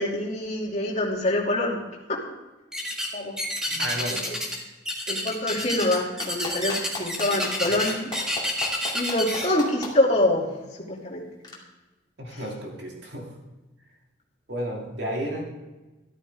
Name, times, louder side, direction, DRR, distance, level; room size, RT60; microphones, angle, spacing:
voice 1, 0.0-1.8 2.1-2.2 3.1-3.4 4.1-4.2 5.1-8.1 8.9-10.5 10.8-11.3 12.3-12.4, left 1 dB, 40° left, -3 dB, 2.7 m, -25 dB
sound 1, 2.7-3.1 3.4-4.6 4.8-9.5, left 1 dB, 5° right, 1.9 m, -29 dB
voice 2, 3.7-4.3 12.2-13.3 14.5-15.4, right 1 dB, 65° right, -1 dB, 2.6 m, -32 dB
Clapping, 6.2-9.9 11.4-11.5, left 3 dB, 25° left, 2.5 m, -34 dB
13.5 x 13.0 x 3.6 m, 1.1 s
head